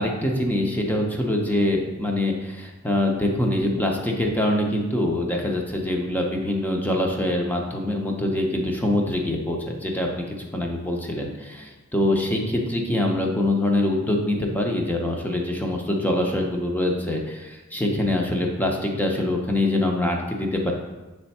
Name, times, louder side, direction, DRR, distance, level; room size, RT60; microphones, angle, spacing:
voice 1, 0.0-10.3 10.5-20.7, left 1 dB, 10° left, 1 dB, 0.7 m, -24 dB
7.3 x 3.4 x 4.2 m, 1.1 s
head